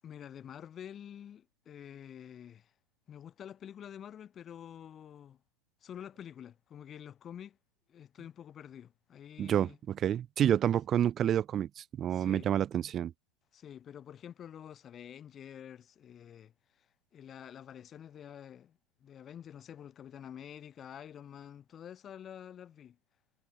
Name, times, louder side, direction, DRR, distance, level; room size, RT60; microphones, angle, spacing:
voice 1, 0.0-2.7 3.1-5.4 5.8-7.6 7.9-9.8 12.1-12.5 13.5-16.9 17.1-23.0, left 9 dB, 25° left, 7.5 m, -48 dB
voice 2, 9.4-13.1, right 10 dB, 25° right, 0.7 m, -29 dB
figure-of-eight pair, 90°, 0 cm